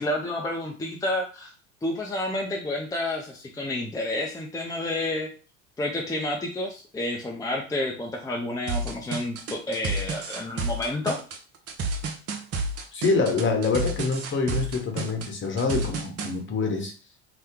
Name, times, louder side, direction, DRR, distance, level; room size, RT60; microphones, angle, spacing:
voice 1, 0.0-1.5 1.8-5.3 5.8-11.2, left 1 dB, 10° left, -1 dB, 0.6 m, -30 dB
sound 1, 8.7-16.3, right 3 dB, 45° right, 0.8 m, -30 dB
voice 2, 12.9-16.9, left 4 dB, 35° left, 3 dB, 1.0 m, -26 dB
2.8 x 2.2 x 3.6 m, 0.36 s
hypercardioid pair, 80°, 35 cm